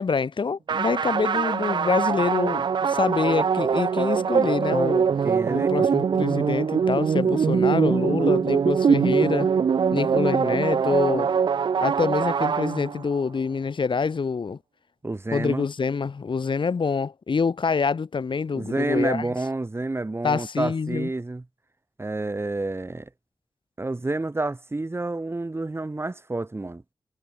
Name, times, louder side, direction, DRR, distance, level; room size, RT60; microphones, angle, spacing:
voice 1, 0.0-5.1 5.5-9.5 9.9-11.3 11.8-14.6 15.3-19.3 20.2-21.1, left 5 dB, 70° left, 2.5 m, -26 dB
sound 1, 0.7-13.2, right 6 dB, 65° right, 0.3 m, -23 dB
voice 2, 5.2-5.9 15.0-15.7 18.5-21.4 22.0-23.1 23.8-26.8, right 2 dB, 30° right, 1.9 m, -29 dB
wide cardioid pair, 90°, 9 cm